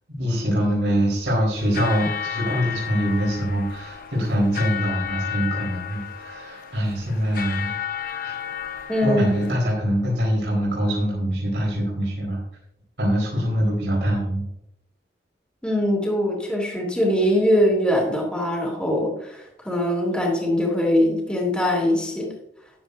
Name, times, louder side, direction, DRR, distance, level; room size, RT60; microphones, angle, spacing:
voice 1, 0.1-7.7 8.2-8.4 9.0-12.4 13.0-14.4, equal, 80° right, -5 dB, 4.1 m, -24 dB
sound 1, 1.5-9.5, left 9 dB, 55° left, 1.0 m, -33 dB
voice 2, 8.9-9.2 15.6-22.3, equal, 5° left, -2 dB, 2.7 m, -22 dB
13.5 x 10.5 x 2.7 m, 0.81 s
head